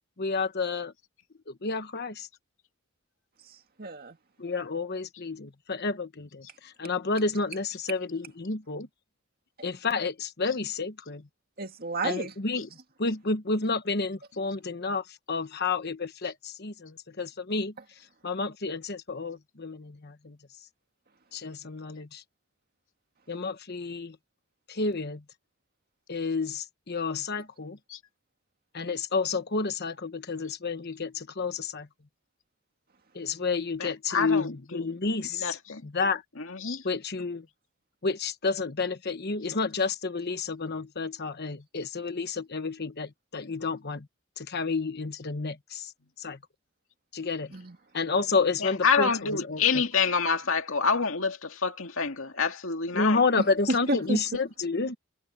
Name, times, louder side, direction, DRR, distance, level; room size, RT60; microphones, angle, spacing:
voice 1, 0.2-0.9 1.6-2.3 4.4-8.9 9.6-11.2 12.0-12.7 13.0-17.7 18.2-20.4 21.3-22.2 23.3-24.2 24.7-25.2 26.1-27.8 28.7-31.9 33.1-36.2 36.8-37.5 38.0-44.1 44.4-45.9 46.2-46.4 47.1-47.5 47.9-49.8 52.9-55.0, left 4 dB, 50° left, 1.2 m, -30 dB
voice 2, 3.5-4.2 11.6-12.3 47.5-47.8 53.4-54.2, right 2 dB, 45° right, 2.2 m, -31 dB
voice 3, 33.8-34.8 35.4-35.8 36.5-36.8 48.6-53.2, left 5 dB, 65° left, 2.4 m, -27 dB
head